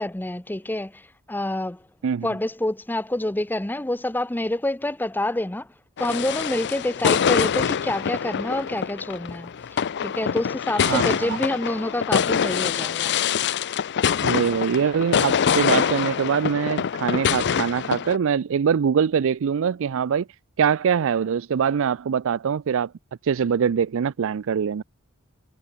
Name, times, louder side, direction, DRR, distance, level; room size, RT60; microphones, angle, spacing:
voice 1, 0.0-1.8 2.2-5.7 6.0-9.5 10.0-13.1, left 1 dB, 10° left, 0.7 m, -27 dB
sound 1, 6.0-18.2, left 7 dB, 55° left, 0.5 m, -24 dB
voice 2, 10.8-11.4 14.2-20.3 20.6-22.9 23.2-24.8, right 7 dB, 65° right, 0.4 m, -23 dB
head